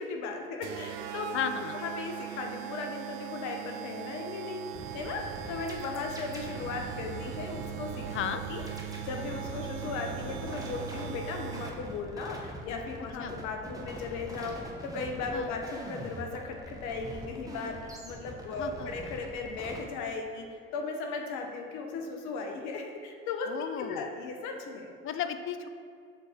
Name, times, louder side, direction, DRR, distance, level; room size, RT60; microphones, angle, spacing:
voice 1, 0.0-1.3 1.7-8.1 8.5-8.6 9.0-14.6 14.8-23.5 23.8-24.9, left 4 dB, 65° left, 3 dB, 0.9 m, -37 dB
sound 1, 0.6-12.0, right 11 dB, 65° right, 0.5 m, -40 dB
voice 2, 1.3-1.8 8.1-8.4 13.2-13.3 15.3-15.5 18.6-18.9 23.5-24.1 25.0-25.7, left 8 dB, 45° left, 10 dB, 0.5 m, -34 dB
sound 2, 4.7-19.8, right 1 dB, 10° right, 1.0 m, -43 dB
6.6 x 4.1 x 3.5 m, 2.2 s
hypercardioid pair, 60°, 31 cm